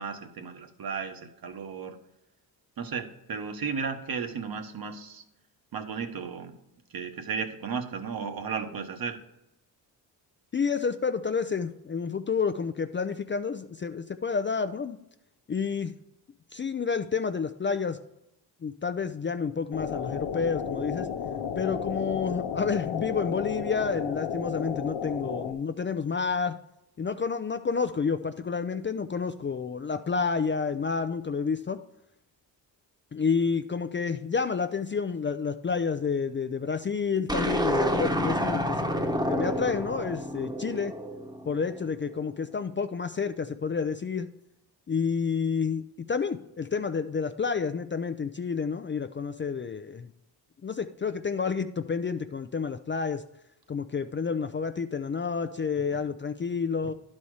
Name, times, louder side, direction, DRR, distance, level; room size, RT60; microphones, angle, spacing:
voice 1, 0.0-2.0 2.8-5.2 5.7-6.5 6.9-9.2, right 5 dB, 50° right, 6 dB, 1.2 m, -34 dB
voice 2, 10.5-15.0 15.5-15.9 16.5-18.0 18.6-21.1 21.6-26.6 27.0-31.8 33.1-40.9 41.5-44.3 44.9-45.8 46.1-50.1 50.6-53.2 53.7-56.9, left 5 dB, 25° left, 9 dB, 0.4 m, -29 dB
sound 1, 19.7-25.5, left 7 dB, 85° left, 0.8 m, -33 dB
sound 2, 37.3-41.7, equal, 10° right, 1.1 m, -29 dB
11.0 x 4.3 x 4.8 m, 0.84 s
cardioid pair, 65°, 44 cm